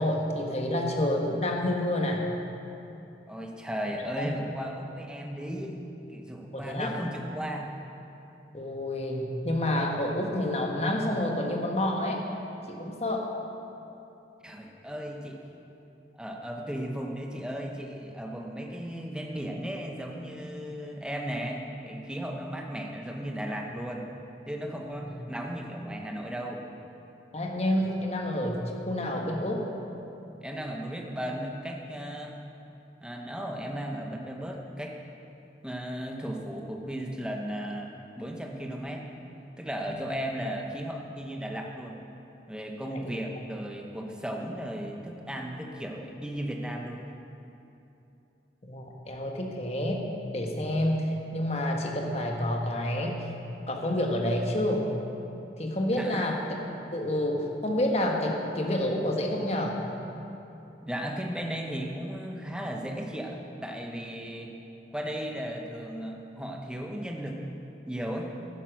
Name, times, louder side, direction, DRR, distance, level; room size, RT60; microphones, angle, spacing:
voice 1, 0.0-2.3 4.2-4.3 6.5-6.9 8.5-12.2 12.7-13.3 25.0-25.1 27.3-29.6 42.8-43.1 48.6-50.0 50.3-53.3 53.7-54.9 55.6-56.4 56.9-59.8, left 1 dB, 35° left, 1 dB, 1.3 m, -29 dB
voice 2, 3.3-5.8 6.1-7.7 14.4-15.4 16.1-24.1 24.5-26.6 30.4-32.4 33.0-35.0 35.6-39.1 39.6-42.0 42.5-47.0 56.0-56.3 60.8-64.5 64.9-67.4 67.9-68.4, equal, 5° right, 1 dB, 0.9 m, -35 dB
10.5 x 10.0 x 6.3 m, 2.8 s
head